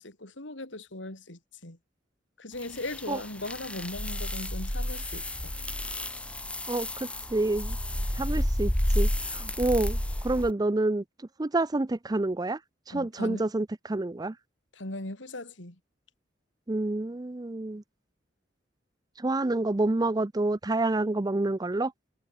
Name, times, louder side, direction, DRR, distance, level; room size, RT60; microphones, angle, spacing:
voice 1, 0.0-1.8 2.4-5.6 12.9-13.4 14.7-15.8, left 2 dB, 85° left, 4.0 m, -39 dB
sound 1, 2.6-10.5, left 1 dB, 5° left, 0.9 m, -31 dB
voice 2, 6.7-7.8 8.1-11.0 11.4-12.6 12.9-14.4 16.7-17.8 19.2-21.9, right 2 dB, 20° right, 0.5 m, -28 dB
head